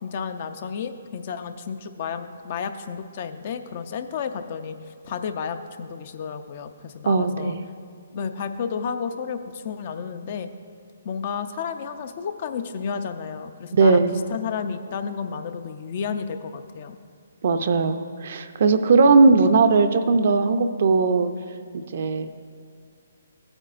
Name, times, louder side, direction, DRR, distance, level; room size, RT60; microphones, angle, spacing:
voice 1, 0.0-7.5 8.1-10.5 11.0-17.0, left 6 dB, 45° left, 9 dB, 0.5 m, -32 dB
voice 2, 7.1-7.6 13.7-14.3 17.4-21.3 21.7-22.3, right 4 dB, 55° right, 9 dB, 0.5 m, -19 dB
15.5 x 8.8 x 2.5 m, 2.2 s
hypercardioid pair, 145°, 0 cm